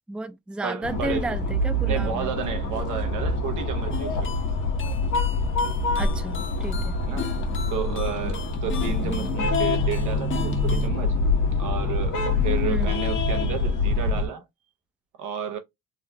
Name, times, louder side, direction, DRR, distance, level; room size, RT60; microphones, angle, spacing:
voice 1, 0.1-2.3 6.0-6.9 12.6-12.9, right 2 dB, 5° right, 0.4 m, -32 dB
voice 2, 0.6-1.4 1.9-4.5 7.0-7.3 7.7-11.1 11.6-14.4 15.2-15.6, right 7 dB, 85° right, 1.0 m, -32 dB
sound 1, 0.8-14.3, left 2 dB, 80° left, 1.4 m, -25 dB
sound 2, 3.9-10.9, left 8 dB, 40° left, 0.8 m, -38 dB
3.8 x 2.2 x 2.7 m
cardioid pair, 90°, 30 cm